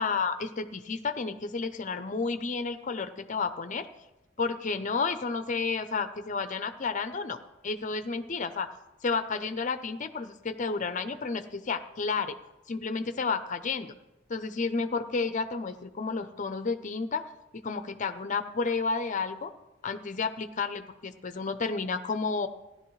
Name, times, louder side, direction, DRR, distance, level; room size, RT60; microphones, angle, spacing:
voice 1, 0.0-3.9 4.4-8.7 9.0-12.4 12.7-13.9 14.3-17.2 17.5-19.5 19.8-22.5, left 4 dB, 40° left, 11 dB, 0.6 m, -31 dB
15.5 x 11.5 x 3.2 m, 0.96 s
head